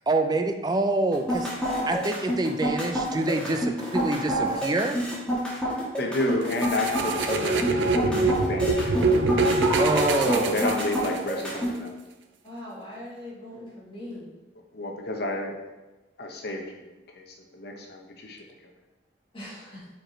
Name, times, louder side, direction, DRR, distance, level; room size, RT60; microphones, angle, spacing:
voice 1, 0.1-1.5 1.9-5.0 9.8-10.7, right 2 dB, 20° right, 6 dB, 0.4 m, -26 dB
sound 1, 1.1-11.7, equal, 5° left, 1.6 m, -28 dB
voice 2, 6.0-7.6 7.9-9.0 10.2-11.9 14.7-15.6 16.2-16.8 17.2-17.3 17.5-18.4, left 2 dB, 60° left, 2 dB, 0.8 m, -30 dB
sound 2, 6.5-11.4, right 3 dB, 85° right, 0.5 m, -25 dB
voice 3, 12.4-14.3 19.3-19.8, left 1 dB, 30° left, -7 dB, 2.0 m, -40 dB
5.1 x 4.6 x 4.4 m, 1.1 s
head